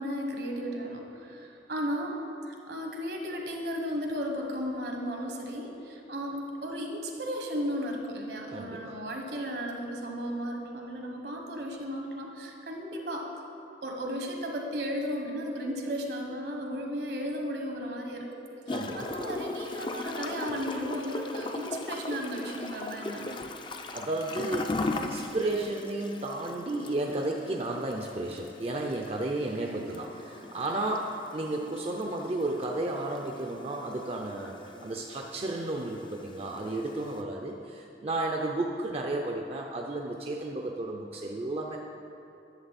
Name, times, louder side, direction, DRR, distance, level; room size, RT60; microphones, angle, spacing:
voice 1, 0.0-2.2 2.5-13.3 13.8-18.3 18.9-23.4 29.6-29.9, equal, 70° right, 2 dB, 1.3 m, -35 dB
voice 2, 8.5-9.0 18.7-19.1 23.9-34.5 34.8-41.8, right 2 dB, 35° right, 1 dB, 0.5 m, -33 dB
Gurgling / Toilet flush, 18.7-37.2, left 2 dB, 25° left, 0.4 m, -39 dB
11.5 x 7.3 x 4.2 m, 2.7 s
head